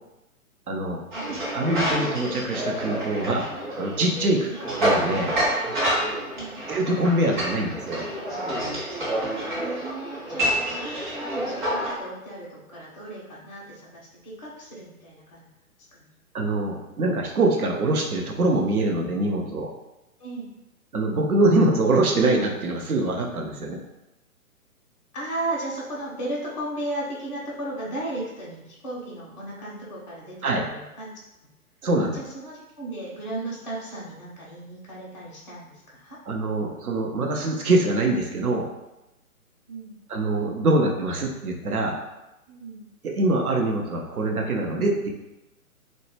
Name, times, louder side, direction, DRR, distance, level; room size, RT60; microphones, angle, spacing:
voice 1, 0.7-1.0 1.3-5.4 6.7-8.1 16.3-19.7 20.9-23.8 30.4-30.6 31.8-32.2 36.3-38.7 40.1-42.0 43.0-45.1, right 2 dB, 75° right, 1 dB, 0.6 m, -24 dB
sound 1, 1.1-11.9, right 1 dB, 35° right, 0.7 m, -28 dB
voice 2, 9.5-15.5 15.9-16.1 20.2-20.5 25.1-31.1 32.0-36.2 39.7-40.0 42.5-42.8, right 1 dB, 30° left, -6 dB, 0.4 m, -35 dB
2.1 x 2.0 x 3.2 m, 0.95 s
figure-of-eight pair, 130°, 44 cm